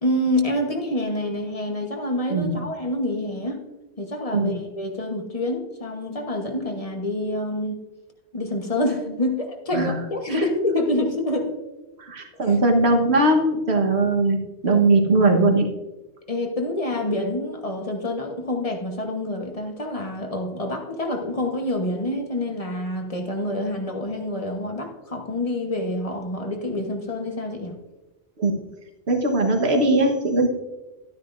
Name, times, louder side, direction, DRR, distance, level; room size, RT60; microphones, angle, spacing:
voice 1, 0.0-3.6 4.0-7.8 8.3-11.5 12.4-12.6 16.3-27.7, left 1 dB, 30° left, 3 dB, 1.2 m, -27 dB
voice 2, 12.0-14.4 14.6-15.7 28.4-28.6 29.1-30.5, right 2 dB, 65° right, 3 dB, 1.5 m, -20 dB
12.5 x 9.6 x 2.6 m, 1.1 s
omnidirectional pair, 1.2 m